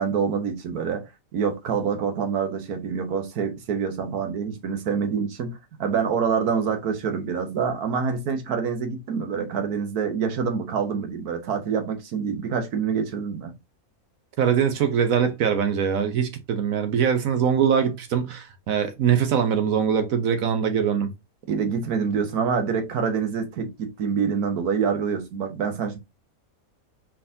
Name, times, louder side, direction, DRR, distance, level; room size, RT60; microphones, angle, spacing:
voice 1, 0.0-13.5 21.5-26.0, right 6 dB, 90° right, 1.5 m, -26 dB
voice 2, 14.4-21.1, right 7 dB, 70° right, 1.1 m, -22 dB
4.5 x 3.7 x 2.6 m
omnidirectional pair, 1.6 m